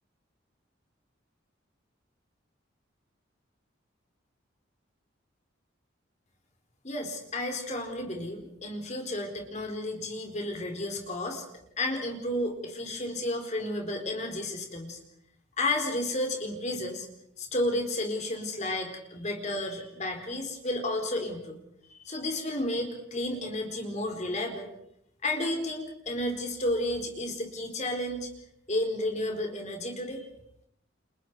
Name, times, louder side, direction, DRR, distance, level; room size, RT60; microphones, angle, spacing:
voice 1, 6.8-11.4 11.8-15.0 15.6-17.1 17.4-21.6 21.9-24.7 25.2-28.3 28.7-30.3, left 1 dB, 35° left, 3 dB, 4.2 m, -32 dB
30.0 x 26.5 x 4.8 m, 0.76 s
head